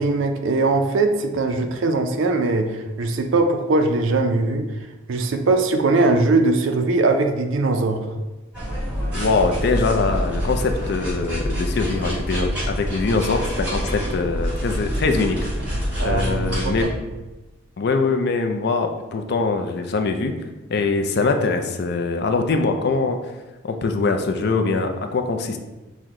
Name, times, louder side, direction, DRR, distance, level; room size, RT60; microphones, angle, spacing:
voice 1, 0.0-4.6 5.1-8.1 16.0-16.7, right 3 dB, 65° right, 6 dB, 0.4 m, -20 dB
sound 1, 8.5-16.8, equal, 5° right, 1.4 m, -26 dB
voice 2, 9.1-15.4 16.0-16.9 17.8-20.3 20.7-23.2 23.6-25.6, left 3 dB, 50° left, 5 dB, 0.4 m, -22 dB
6.1 x 2.1 x 3.6 m, 1.1 s
head